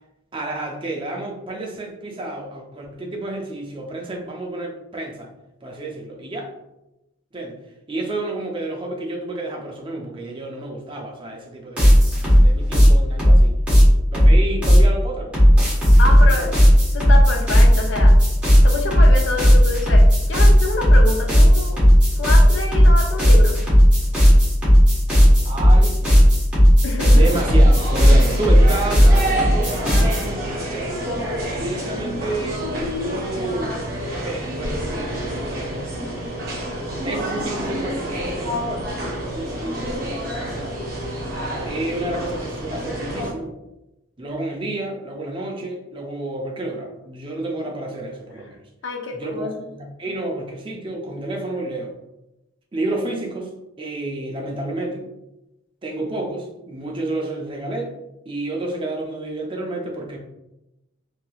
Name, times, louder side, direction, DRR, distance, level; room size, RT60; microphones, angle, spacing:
voice 1, 0.3-5.3 5.6-6.5 7.3-7.6 7.9-13.6 14.1-15.4 16.1-16.6 25.4-26.2 27.1-30.9 31.5-33.8 34.2-34.8 35.2-36.4 37.0-38.9 39.2-40.8 41.6-43.5 44.2-48.6 49.1-51.9 52.7-53.5 53.8-55.1 55.8-57.9 58.3-60.2, right 2 dB, 25° right, 0 dB, 0.4 m, -30 dB
sound 1, 11.8-14.9 15.3-30.2, equal, 5° right, 1.0 m, -13 dB
voice 2, 16.0-16.5 16.9-18.2 18.6-21.8 22.2-23.6 26.8-27.2 48.8-49.6, left 2 dB, 60° left, 2 dB, 0.5 m, -27 dB
sound 2, 27.1-43.3, right 1 dB, 45° right, 0.9 m, -28 dB
3.3 x 2.7 x 2.3 m, 0.94 s
head